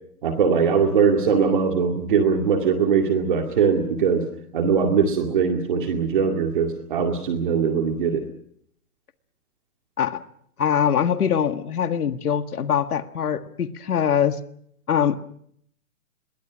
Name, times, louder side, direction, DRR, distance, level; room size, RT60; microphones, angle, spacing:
voice 1, 0.2-4.2 4.5-8.2, right 6 dB, 35° right, 3 dB, 2.2 m, -21 dB
voice 2, 10.6-14.4 14.9-15.2, left 8 dB, 75° left, 9 dB, 1.8 m, -23 dB
28.0 x 22.5 x 6.2 m, 0.68 s
hypercardioid pair, 180°, 45 cm